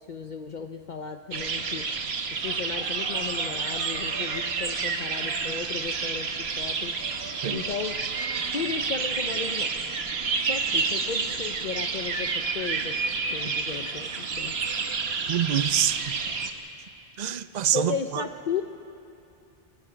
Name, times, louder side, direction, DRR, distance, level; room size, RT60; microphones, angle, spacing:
voice 1, 0.0-1.9 2.3-7.0 7.5-7.9 8.5-9.7 10.4-13.0 13.3-14.6 17.7-18.6, left 6 dB, 50° left, 6 dB, 0.8 m, -35 dB
sound 1, 1.3-16.5, right 4 dB, 80° right, 1.4 m, -29 dB
voice 2, 15.3-16.0 17.2-18.2, right 10 dB, 50° right, 13 dB, 0.6 m, -26 dB
28.0 x 20.0 x 5.1 m, 2.6 s
omnidirectional pair, 1.1 m